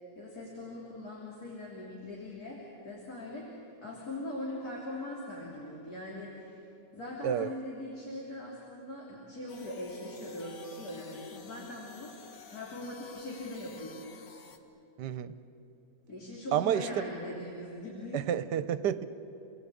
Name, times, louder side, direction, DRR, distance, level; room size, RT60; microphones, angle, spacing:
voice 1, 0.1-6.6 6.9-14.0 16.1-18.2, left 1 dB, 60° left, -5 dB, 3.9 m, -41 dB
sound 1, 9.5-14.6, left 5 dB, 75° left, 2.0 m, -52 dB
voice 2, 15.0-15.3 16.5-16.9 18.1-19.1, right 9 dB, 80° right, 13 dB, 1.4 m, -29 dB
28.5 x 19.5 x 8.4 m, 2.9 s
omnidirectional pair, 1.9 m